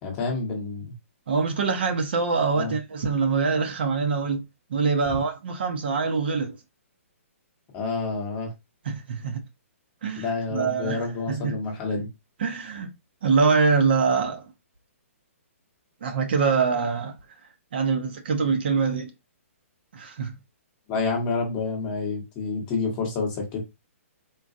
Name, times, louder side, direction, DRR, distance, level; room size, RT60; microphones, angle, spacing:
voice 1, 0.0-0.9 2.5-2.7 7.7-8.5 10.2-12.1 20.9-23.6, left 4 dB, 15° left, 0.9 m, -28 dB
voice 2, 1.3-4.4 4.7-6.6 8.8-9.4 10.0-11.6 12.4-12.9 13.2-14.5 16.0-17.2 17.7-19.1 19.9-20.4, right 5 dB, 45° right, 0.7 m, -24 dB
3.8 x 2.2 x 2.5 m
hypercardioid pair, 175°, 8 cm